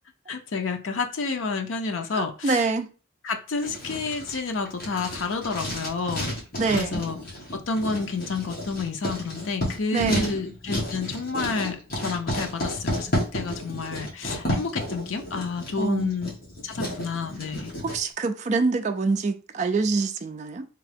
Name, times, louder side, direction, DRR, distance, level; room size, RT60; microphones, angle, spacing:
voice 1, 0.3-2.6 3.2-6.3 6.7-7.2 7.5-11.8 12.0-16.3 16.6-17.7, left 4 dB, 75° left, 0.6 m, -29 dB
voice 2, 2.1-2.9 6.6-7.0 9.9-10.3 15.8-16.1 17.8-20.7, right 4 dB, 35° right, 0.3 m, -25 dB
Writing, 3.6-18.0, left 1 dB, 45° left, 1.5 m, -32 dB
3.6 x 2.8 x 3.4 m
head